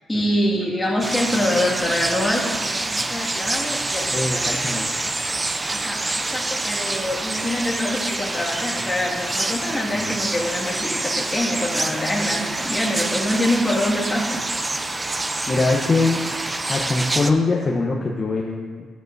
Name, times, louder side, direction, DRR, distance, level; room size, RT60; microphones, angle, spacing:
voice 1, 0.1-4.8 5.7-14.6, left 1 dB, 15° left, -3 dB, 2.0 m, -25 dB
sound 1, 1.0-17.3, right 2 dB, 20° right, 0.5 m, -26 dB
voice 2, 4.1-5.0 9.9-10.1 15.5-16.2 16.7-18.9, left 3 dB, 30° left, -1 dB, 0.9 m, -22 dB
12.5 x 8.9 x 2.7 m, 1.5 s
cardioid pair, 90°, 0 cm